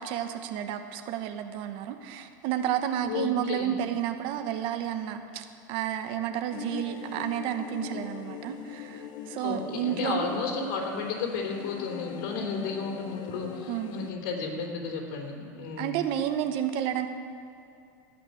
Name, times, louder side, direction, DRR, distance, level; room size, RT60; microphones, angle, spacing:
voice 1, 0.0-10.4 13.7-13.9 15.8-17.1, right 10 dB, 55° right, 7 dB, 1.1 m, -31 dB
voice 2, 3.0-3.7 9.4-16.0, left 4 dB, 65° left, 1 dB, 3.3 m, -33 dB
sound 1, 6.5-14.1, left 10 dB, 45° left, 0.8 m, -42 dB
17.0 x 5.9 x 9.2 m, 2.6 s
supercardioid pair, 120°, 10 cm